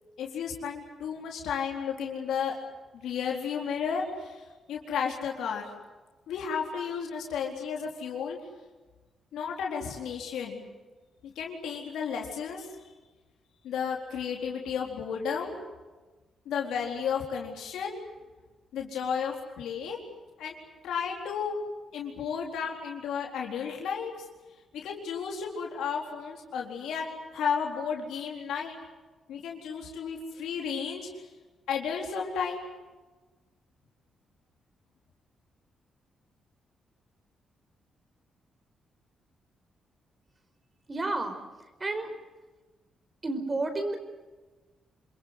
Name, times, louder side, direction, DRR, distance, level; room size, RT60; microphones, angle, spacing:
voice 1, 0.2-2.6 2.9-4.4 4.7-5.7 6.3-8.4 9.3-10.6 11.2-12.7 13.6-15.5 16.5-18.0 18.7-20.0 20.4-20.6 20.8-21.6 21.9-24.1 24.7-28.8 29.3-31.1 31.7-32.7, left 6 dB, 90° left, 0 dB, 4.1 m, -33 dB
voice 2, 40.9-42.1 43.2-44.0, right 2 dB, 30° right, 8 dB, 4.8 m, -31 dB
27.5 x 22.0 x 8.1 m, 1.2 s
cardioid pair, 95°, 0 cm